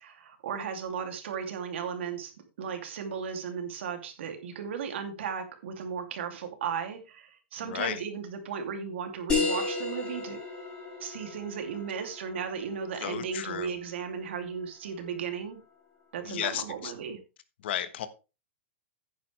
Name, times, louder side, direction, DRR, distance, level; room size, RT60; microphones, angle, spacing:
voice 1, 0.0-2.3 2.6-10.4 11.0-15.6 16.1-17.2, right 6 dB, 65° right, 2.8 m, -35 dB
voice 2, 7.6-8.0 13.0-13.7 16.2-16.9 17.6-18.1, left 10 dB, 55° left, 1.3 m, -33 dB
sound 1, 9.3-14.4, left 4 dB, 15° left, 7.1 m, -34 dB
10.5 x 9.5 x 3.4 m
supercardioid pair, 170°, 7 cm